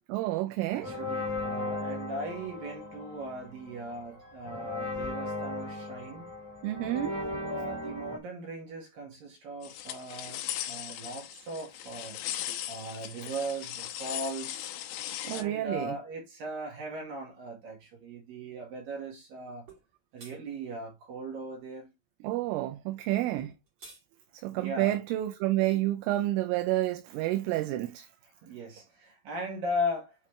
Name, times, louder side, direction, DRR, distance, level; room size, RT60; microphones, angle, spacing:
voice 1, 0.1-1.0 6.6-7.1 15.2-16.0 22.2-23.5 24.3-28.1, right 15 dB, 85° right, 3.1 m, -29 dB
voice 2, 0.7-6.3 7.0-12.2 12.5-14.7 15.3-19.7 20.1-21.9 24.5-25.0 28.4-30.1, equal, 55° right, 2.9 m, -38 dB
sound 1, 0.8-8.2, left 2 dB, 45° left, 0.9 m, -37 dB
sound 2, 9.6-15.4, left 12 dB, 80° left, 2.6 m, -38 dB
sound 3, 19.7-19.8 20.2-20.4 23.4-24.0, right 3 dB, 35° right, 3.3 m, -49 dB
8.3 x 4.1 x 3.2 m
omnidirectional pair, 5.7 m